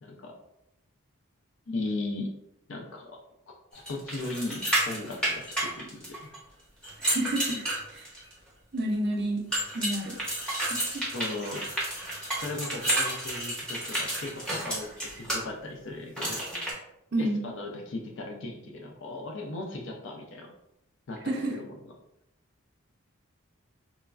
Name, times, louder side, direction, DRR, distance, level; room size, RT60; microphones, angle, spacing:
voice 1, 0.0-0.3 1.7-2.3 2.7-3.2 3.7-6.3 11.1-11.7 12.4-16.7 17.2-20.5 21.1-21.7, left 2 dB, 55° left, 1 dB, 0.4 m, -37 dB
sound 1, 3.9-6.4 6.8-8.3 9.5-15.4 16.2-16.7, right 1 dB, 5° left, 0.7 m, -31 dB
voice 2, 7.0-8.1 8.7-9.5 9.7-10.2 10.6-11.0 17.1-17.4 21.3-21.5, right 1 dB, 50° right, 0 dB, 0.4 m, -30 dB
3.0 x 2.3 x 2.3 m, 0.82 s
head